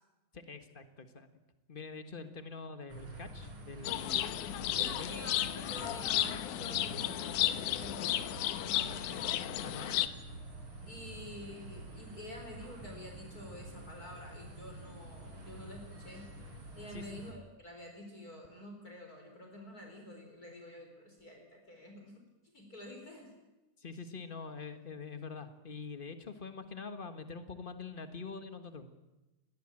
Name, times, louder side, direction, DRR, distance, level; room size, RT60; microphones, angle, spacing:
voice 1, 0.3-1.3 1.7-5.1 9.6-9.9 16.9-17.0 23.8-28.9, left 4 dB, 45° left, 9 dB, 0.6 m, -45 dB
sound 1, 2.9-17.3, right 2 dB, 40° right, 5.1 m, -48 dB
sound 2, 3.8-10.1, left 13 dB, 85° left, 2.5 m, -33 dB
voice 2, 4.8-8.4 8.7-9.2 9.6-10.1 10.5-16.3 16.7-22.2 22.5-23.3, left 1 dB, 30° left, 1 dB, 4.7 m, -49 dB
20.5 x 18.5 x 9.0 m, 1.1 s
omnidirectional pair, 3.5 m